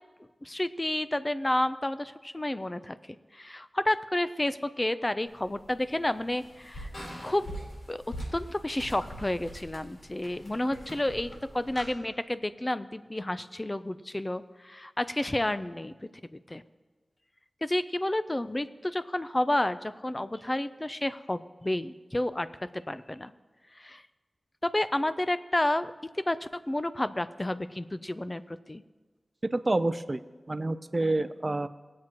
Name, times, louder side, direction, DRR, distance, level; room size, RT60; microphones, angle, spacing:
voice 1, 0.4-3.0 3.3-6.9 7.2-7.5 7.9-8.0 8.3-15.9 16.3-16.6 17.6-23.3 23.7-24.0 24.6-25.9 26.3-28.8, left 1 dB, 25° left, 13 dB, 0.4 m, -30 dB
sound 1, 5.3-11.9, equal, 65° left, 3.8 m, -43 dB
voice 2, 29.5-30.2 30.5-31.7, right 2 dB, 40° right, 13 dB, 0.5 m, -28 dB
21.0 x 7.5 x 3.0 m, 1.3 s
wide cardioid pair, 55°, 0 cm